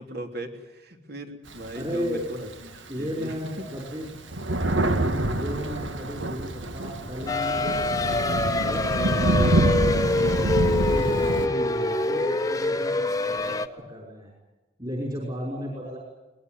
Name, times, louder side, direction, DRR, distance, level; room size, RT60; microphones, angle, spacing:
voice 1, 0.0-3.7, equal, 55° right, 5 dB, 3.5 m, -38 dB
Thunder, 1.5-2.7 3.3-3.4 3.6-11.5, right 1 dB, 75° right, 1.9 m, -26 dB
voice 2, 1.7-2.3 2.9-4.1 5.3-10.4 10.9-14.3 14.8-16.0, equal, 25° right, -1 dB, 5.7 m, -34 dB
sound 1, 7.3-13.7, left 2 dB, 20° left, 1.0 m, -25 dB
22.0 x 21.0 x 9.4 m, 1.1 s
head